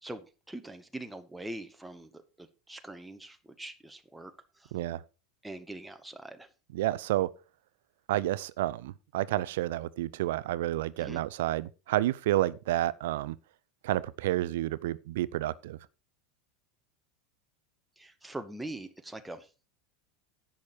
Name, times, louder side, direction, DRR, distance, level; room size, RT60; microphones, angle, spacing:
voice 1, 0.0-4.7 5.4-6.5 11.0-11.2 18.0-19.5, right 1 dB, 5° right, 1.0 m, -43 dB
voice 2, 4.7-5.0 6.7-7.3 8.1-13.4 13.8-15.8, right 15 dB, 60° right, 0.5 m, -30 dB
10.5 x 7.2 x 4.7 m
figure-of-eight pair, 80°, 0 cm